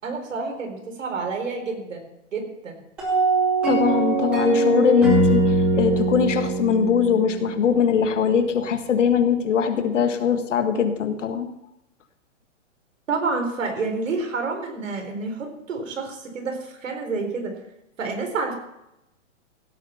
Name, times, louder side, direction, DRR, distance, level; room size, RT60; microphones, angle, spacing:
voice 1, 0.0-2.8 13.1-17.6 18.0-18.5, right 4 dB, 80° right, 4 dB, 4.2 m, -29 dB
sound 1, 3.0-8.1, right 2 dB, 5° right, 0.5 m, -22 dB
voice 2, 3.6-11.5, left 7 dB, 70° left, 8 dB, 1.8 m, -21 dB
16.0 x 8.5 x 5.8 m, 0.87 s
hypercardioid pair, 170°, 38 cm